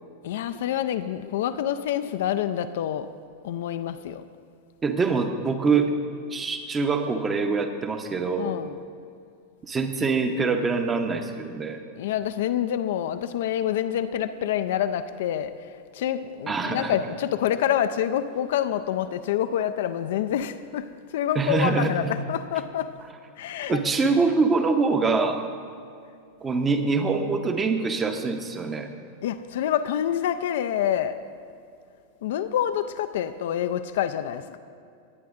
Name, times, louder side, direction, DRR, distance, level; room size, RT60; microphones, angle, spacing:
voice 1, 0.2-3.1 3.4-4.2 8.4-8.8 11.9-22.9 23.4-23.8 29.2-31.2 32.2-34.6, left 10 dB, 55° left, 10 dB, 0.4 m, -27 dB
voice 2, 4.8-5.9 6.3-8.6 9.6-11.8 16.5-17.0 21.3-22.1 23.7-25.4 26.4-28.9, right 4 dB, 20° right, 6 dB, 0.8 m, -24 dB
19.5 x 9.2 x 2.5 m, 2.4 s
figure-of-eight pair, 90°, 0 cm